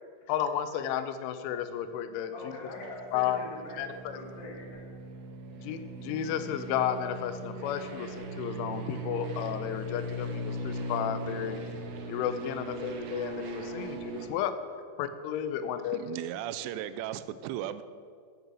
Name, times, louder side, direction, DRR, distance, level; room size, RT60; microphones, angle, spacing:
voice 1, 0.3-2.5 3.1-3.4 3.8-3.9 5.5-11.6 12.1-14.6 15.0-16.0, left 10 dB, 90° left, 10 dB, 3.1 m, -32 dB
voice 2, 2.3-4.9 13.9-14.0 15.6-15.7 17.0-17.1, left 2 dB, 60° left, -2 dB, 2.8 m, -43 dB
sound 1, 2.7-14.3, right 2 dB, 70° right, 2.8 m, -39 dB
voice 3, 15.9-17.8, right 12 dB, 90° right, 13 dB, 3.0 m, -36 dB
8.1 x 7.7 x 7.5 m, 2.1 s
omnidirectional pair, 5.4 m